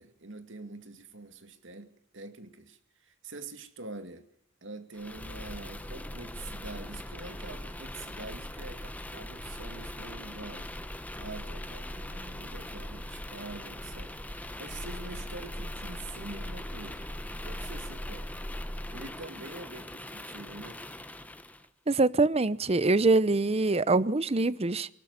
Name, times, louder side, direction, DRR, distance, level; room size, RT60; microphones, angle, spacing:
voice 1, 0.0-4.3 4.6-10.8 11.1-17.1 17.4-18.4 18.9-20.8, right 3 dB, 65° right, 2.2 m, -45 dB
sound 1, 4.9-21.7, left 1 dB, 10° left, 1.1 m, -40 dB
voice 2, 21.9-24.9, right 3 dB, 30° right, 0.7 m, -24 dB
24.0 x 12.5 x 9.7 m
head